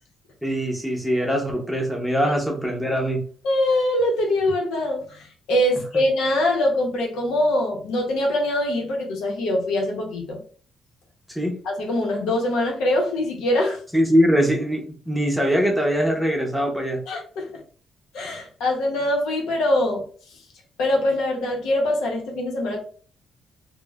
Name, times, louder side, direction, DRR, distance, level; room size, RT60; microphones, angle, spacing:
voice 1, 0.4-3.2 11.3-11.5 13.9-17.0, equal, ahead, 1 dB, 0.7 m, -22 dB
voice 2, 3.4-10.4 11.6-13.8 17.1-17.6 18.1-20.0 20.8-22.8, left 1 dB, 85° left, 0 dB, 0.7 m, -23 dB
3.0 x 2.0 x 2.3 m, 0.43 s
cardioid pair, 90°, 0 cm